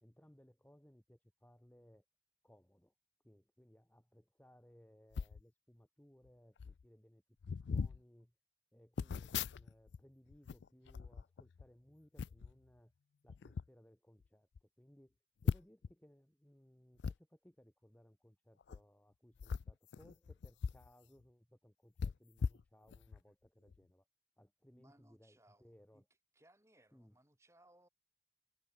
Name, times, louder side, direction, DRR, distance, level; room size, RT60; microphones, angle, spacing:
voice 1, 0.0-2.0 2.4-2.9 3.2-8.3 8.7-12.9 13.2-15.2 15.4-24.1 24.4-26.0 26.9-27.1, equal, 10° left, 1.0 m, -65 dB
sound 1, 5.1-5.4 6.3-6.4 6.6-6.8 7.4-8.0 9.0-10.0 10.3-11.7 12.2-12.5 13.3-13.7 14.2-14.3 14.6-14.7 15.4-15.9 17.0-17.2 18.6-18.8 19.4-20.9 21.2-21.3 22.0-23.2 23.7-23.8, left 5 dB, 85° left, 0.4 m, -40 dB
voice 2, 24.7-26.0 26.3-27.9, right 1 dB, 15° right, 6.3 m, -68 dB
head